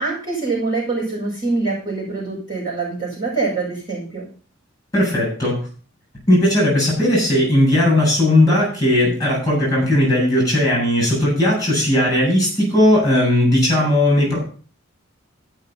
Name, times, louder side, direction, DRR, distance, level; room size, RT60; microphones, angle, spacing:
voice 1, 0.0-4.2, right 3 dB, 20° right, -7 dB, 6.7 m, -24 dB
voice 2, 4.9-5.6 6.3-14.4, left 1 dB, 15° left, -2 dB, 7.2 m, -17 dB
14.5 x 6.1 x 5.7 m, 0.41 s
head